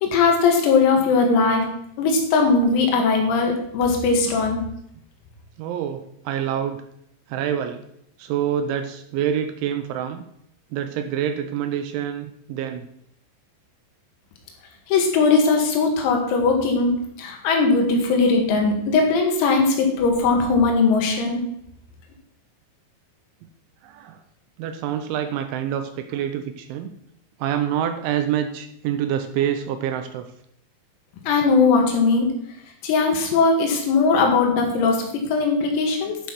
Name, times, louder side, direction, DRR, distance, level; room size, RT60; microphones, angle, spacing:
voice 1, 0.0-1.7 2.0-4.6 14.9-21.4 31.3-32.3 32.8-36.2, left 4 dB, 90° left, 2 dB, 4.8 m, -19 dB
voice 2, 5.6-6.8 7.3-7.8 8.2-10.2 10.7-12.9 23.8-24.2 24.6-26.9 27.4-30.3 33.3-33.4, right 9 dB, 85° right, 8 dB, 2.9 m, -26 dB
11.5 x 6.6 x 5.9 m, 0.74 s
omnidirectional pair, 5.9 m